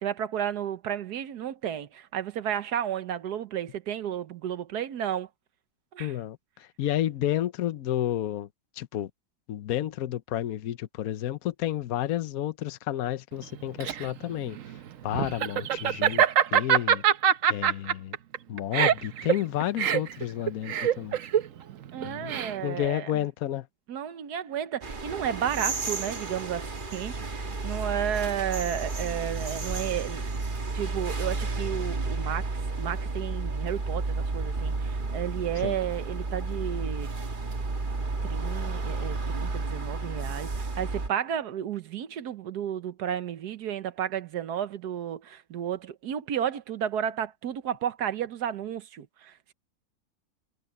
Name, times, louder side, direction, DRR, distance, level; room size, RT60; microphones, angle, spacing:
voice 1, 0.0-5.3 5.9-6.1 21.9-23.1 23.9-30.3 30.7-37.1 38.3-49.5, right 9 dB, 85° right, 1.5 m, -32 dB
voice 2, 6.0-8.5 8.8-9.1 9.5-14.6 15.0-16.2 16.5-17.0 17.5-18.2 18.5-21.2 22.0-22.3 22.6-23.7 35.6-35.7, left 12 dB, 70° left, 1.2 m, -31 dB
Laughter, 13.4-22.8, right 9 dB, 60° right, 1.1 m, -24 dB
sound 1, 24.8-41.1, right 3 dB, 35° right, 1.5 m, -32 dB
omnidirectional pair, 1.7 m